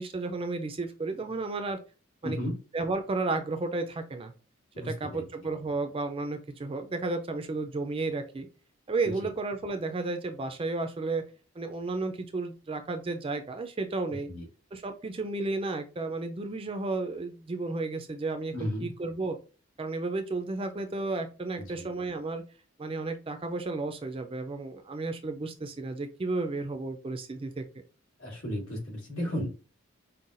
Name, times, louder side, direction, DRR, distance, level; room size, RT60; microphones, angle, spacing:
voice 1, 0.0-1.8 2.2-2.4 2.7-4.3 4.8-8.5 8.9-11.2 11.6-14.3 14.7-19.4 19.8-22.4 22.8-27.6, right 3 dB, 25° right, 7 dB, 0.4 m, -33 dB
voice 2, 2.2-2.6 4.7-5.2 9.2-9.3 14.3-14.4 18.5-18.9 21.6-21.9 28.2-29.5, equal, 75° left, -3 dB, 1.9 m, -34 dB
5.5 x 2.2 x 2.5 m, 0.34 s
head